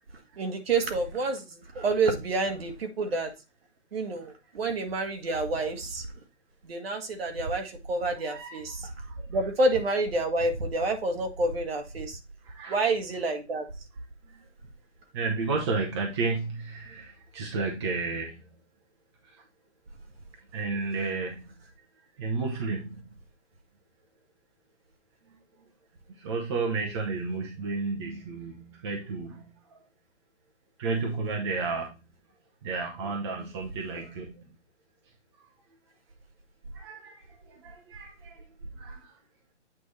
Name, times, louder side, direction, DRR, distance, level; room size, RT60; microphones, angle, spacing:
voice 1, 0.4-3.3 3.9-6.1 6.6-8.9 9.3-12.2 12.7-13.7, right 2 dB, 55° right, 5 dB, 1.6 m, -28 dB
voice 2, 8.2-9.3 12.4-12.8 14.3-14.4 15.1-18.4 19.2-19.4 20.5-21.4 22.2-23.0 26.1-29.4 30.8-31.9 32.6-34.4 36.7-38.4 38.8-39.1, right 4 dB, 25° right, 0 dB, 0.8 m, -32 dB
8.4 x 3.3 x 4.0 m, 0.27 s
hypercardioid pair, 165°, 36 cm